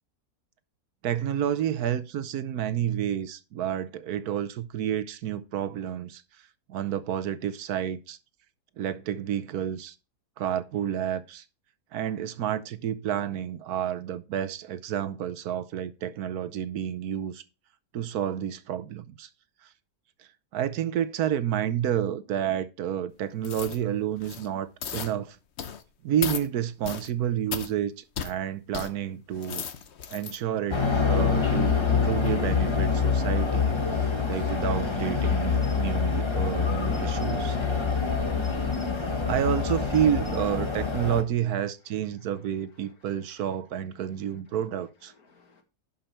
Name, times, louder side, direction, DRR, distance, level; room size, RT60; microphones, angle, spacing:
voice 1, 1.0-6.2 6.7-8.2 8.8-9.9 10.4-11.4 11.9-17.4 17.9-19.3 19.6-19.7 20.5-25.4 26.0-29.6 30.1-37.6 39.0-45.1, right 10 dB, 70° right, 1.2 m, -30 dB
sound 1, 23.4-23.8 24.2-24.5 24.8-25.1 25.6-25.8 26.2-26.5 26.8-27.1 27.5-27.7 28.2-28.3 28.7-28.9 29.3-30.4 30.8-31.0, left 8 dB, 50° left, 1.0 m, -35 dB
sound 2, 30.7-41.2, left 5 dB, 20° left, 1.1 m, -26 dB
voice 2, 42.8-43.1 44.2-44.3 45.1-45.6, left 4 dB, 65° left, 2.1 m, -60 dB
11.5 x 5.5 x 4.4 m
omnidirectional pair, 1.7 m